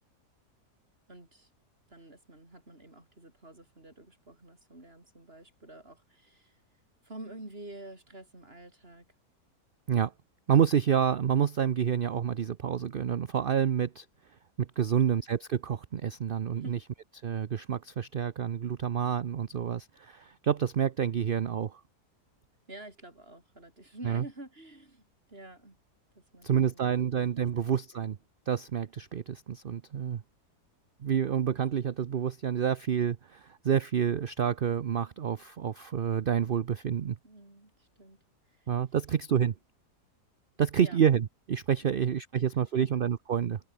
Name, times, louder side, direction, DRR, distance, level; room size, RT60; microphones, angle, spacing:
voice 1, 1.1-1.5 1.9-6.6 7.0-9.1 16.6-16.8 22.7-25.8 26.1-27.2 27.9-28.0 37.2-38.2 38.5-38.7 40.8-41.1 41.8-42.5 42.7-42.9, right 1 dB, 35° right, 6.5 m, -48 dB
voice 2, 10.5-14.0 14.6-16.8 17.2-21.8 24.0-24.2 26.4-28.2 28.5-30.2 31.0-37.2 38.7-39.5 40.6-43.6, right 8 dB, 50° right, 0.6 m, -28 dB
omnidirectional pair, 1.7 m